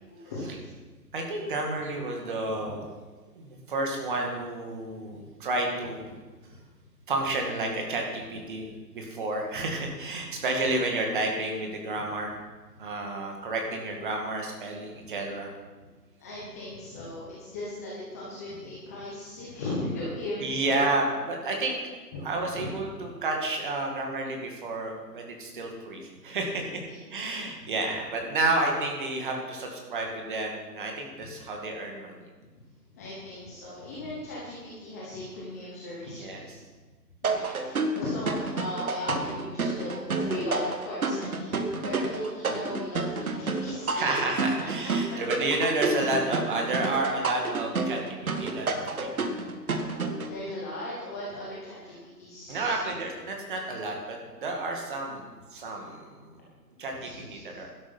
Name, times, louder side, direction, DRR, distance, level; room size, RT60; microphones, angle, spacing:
voice 1, 0.2-0.7 2.6-2.7 5.1-5.2 16.2-20.6 22.1-22.2 22.5-22.7 26.6-27.7 33.0-36.4 37.2-43.9 45.1-45.2 48.5-48.8 50.0-52.8 55.8-55.9 57.0-57.6, left 1 dB, 10° left, -7 dB, 1.1 m, -37 dB
voice 2, 1.1-2.9 3.4-6.1 7.1-12.3 12.8-15.5 20.4-21.8 22.2-26.8 27.1-32.3 36.0-36.6 41.9-42.0 43.9-48.0 48.4-49.1 52.5-56.3 56.8-57.7, right 2 dB, 30° right, 1 dB, 2.2 m, -31 dB
sound 1, 37.2-50.3, right 3 dB, 55° right, 1.7 m, -30 dB
12.0 x 11.5 x 5.8 m, 1.3 s
hypercardioid pair, 160°, 50 cm